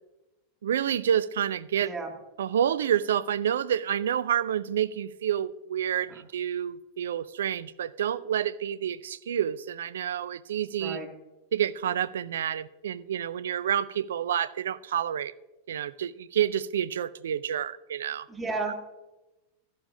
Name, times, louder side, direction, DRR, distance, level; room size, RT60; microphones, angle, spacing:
voice 1, 0.6-1.9 2.4-11.0 11.5-15.3 15.7-18.3, right 9 dB, 60° right, 0.4 m, -28 dB
voice 2, 1.8-2.1 10.8-11.1 18.3-18.7, right 3 dB, 15° right, 2.2 m, -32 dB
13.0 x 11.5 x 2.7 m
figure-of-eight pair, 90°, 0 cm